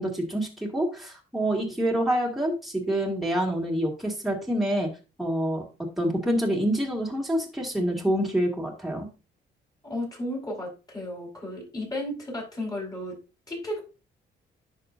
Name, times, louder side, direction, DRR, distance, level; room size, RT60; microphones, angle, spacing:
voice 1, 0.0-4.9 5.2-5.6 6.0-9.1, right 1 dB, ahead, -2 dB, 2.3 m, -27 dB
voice 2, 9.8-13.2 13.5-13.8, left 1 dB, 20° left, -1 dB, 4.5 m, -33 dB
10.5 x 6.1 x 2.6 m, 0.31 s
cardioid pair, 105°, 19 cm